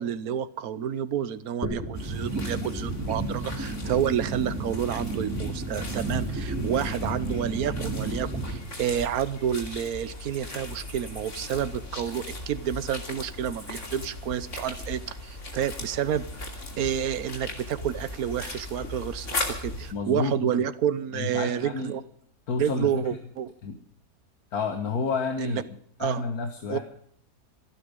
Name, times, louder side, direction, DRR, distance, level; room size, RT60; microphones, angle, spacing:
voice 1, 0.0-22.0 22.6-23.5 25.4-25.6 26.0-26.2 26.7-26.8, right 9 dB, 85° right, 15 dB, 1.3 m, -29 dB
sound 1, 1.6-8.6, right 2 dB, 10° right, 3.4 m, -32 dB
sound 2, 1.9-19.9, left 2 dB, 55° left, 3.1 m, -38 dB
sound 3, 9.9-18.5, equal, 20° left, 6.1 m, -52 dB
voice 2, 19.9-20.7 21.1-22.0 22.5-23.2 23.6-23.8 24.5-25.6 26.0-26.8, left 4 dB, 90° left, 6 dB, 1.9 m, -30 dB
27.5 x 9.5 x 5.2 m, 0.63 s
omnidirectional pair, 1.5 m